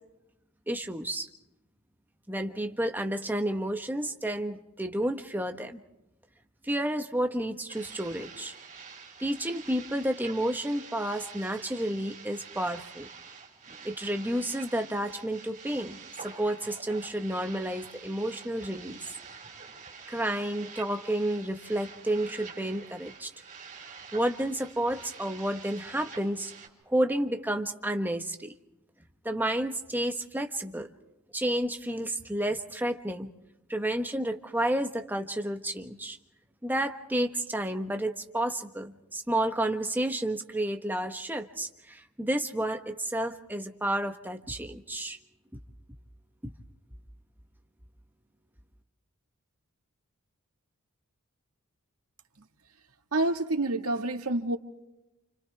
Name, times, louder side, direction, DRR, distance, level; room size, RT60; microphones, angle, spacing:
voice 1, 0.7-1.3 2.3-5.8 6.6-8.5 9.2-13.1 13.8-19.0 20.1-23.3 24.1-26.5 26.9-28.5 29.2-30.9 31.3-33.3 33.7-36.2 36.6-45.2 46.4-46.5, right 1 dB, 10° right, 5 dB, 1.4 m, -31 dB
sound 1, 7.7-26.7, right 5 dB, 35° right, 5.1 m, -47 dB
voice 2, 53.1-54.6, right 2 dB, 85° right, 4 dB, 2.0 m, -28 dB
29.5 x 29.0 x 3.5 m, 0.93 s
head